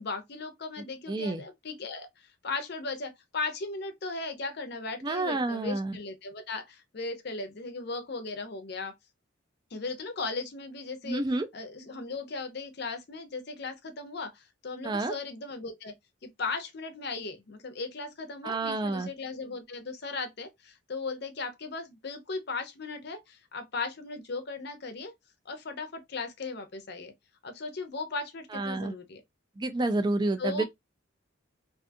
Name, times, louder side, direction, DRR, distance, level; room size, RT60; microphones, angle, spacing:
voice 1, 0.0-2.1 2.4-8.9 9.7-11.2 11.5-15.9 16.2-25.1 25.5-27.1 27.4-29.2 30.4-30.7, left 3 dB, 55° left, 0.6 m, -37 dB
voice 2, 1.1-1.4 5.0-6.0 11.0-11.5 14.8-15.1 18.4-19.1 28.5-28.9 29.6-30.6, right 2 dB, 20° right, 0.3 m, -29 dB
2.5 x 2.4 x 2.5 m
head